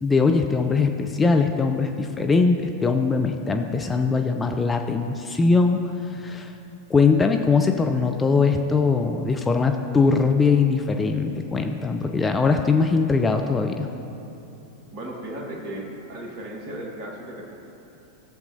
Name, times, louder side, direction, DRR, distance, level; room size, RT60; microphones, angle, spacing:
voice 1, 0.0-5.8 6.1-6.5 6.9-13.9, left 4 dB, 15° left, 4 dB, 0.5 m, -21 dB
voice 2, 14.9-17.6, right 1 dB, 40° right, 1 dB, 1.5 m, -35 dB
15.5 x 7.1 x 2.8 m, 2.9 s
figure-of-eight pair, 90°, 0 cm